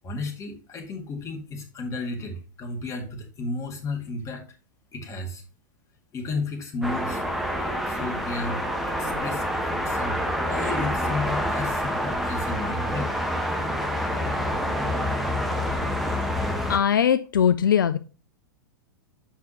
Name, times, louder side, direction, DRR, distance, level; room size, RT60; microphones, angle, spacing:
voice 1, 0.0-4.4 4.9-5.4 6.1-7.2 7.9-10.2 10.5-13.1, left 3 dB, 30° left, 4 dB, 1.8 m, -33 dB
sound 1, 6.8-16.8, equal, ahead, 1.2 m, -27 dB
voice 2, 16.7-18.0, left 8 dB, 75° left, 12 dB, 0.4 m, -20 dB
7.4 x 5.9 x 2.9 m, 0.34 s
figure-of-eight pair, 100°, 11 cm